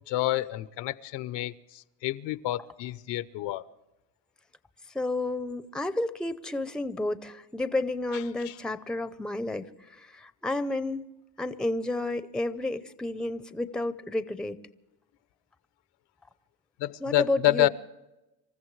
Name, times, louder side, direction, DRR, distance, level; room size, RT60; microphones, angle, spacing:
voice 1, 0.1-1.5 2.0-3.6 8.4-8.5 16.8-17.7, left 15 dB, 75° left, 0.8 m, -28 dB
voice 2, 4.9-11.0 11.4-14.6 17.0-17.7, left 2 dB, ahead, 0.6 m, -31 dB
27.0 x 14.5 x 3.2 m
cardioid pair, 110°, 43 cm